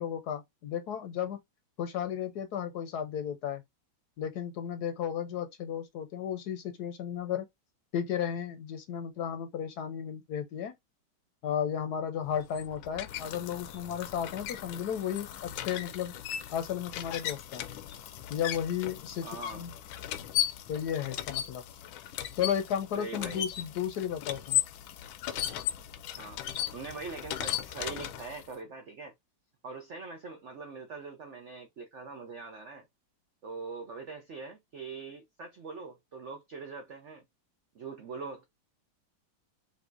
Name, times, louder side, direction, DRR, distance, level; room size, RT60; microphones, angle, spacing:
voice 1, 0.0-1.4 1.8-3.6 4.2-7.5 7.9-10.7 11.4-16.1 16.5-17.7 18.3-19.3 19.5-19.7 20.7-21.6 22.4-24.6, left 9 dB, 65° left, 1.1 m, -34 dB
sound 1, 12.3-28.5, left 12 dB, 85° left, 1.4 m, -37 dB
voice 2, 19.2-19.6 23.0-23.4 26.2-26.4 26.7-29.1 29.6-32.9 33.4-37.2 37.7-38.4, right 4 dB, 70° right, 0.6 m, -42 dB
5.4 x 2.8 x 2.5 m
omnidirectional pair, 2.1 m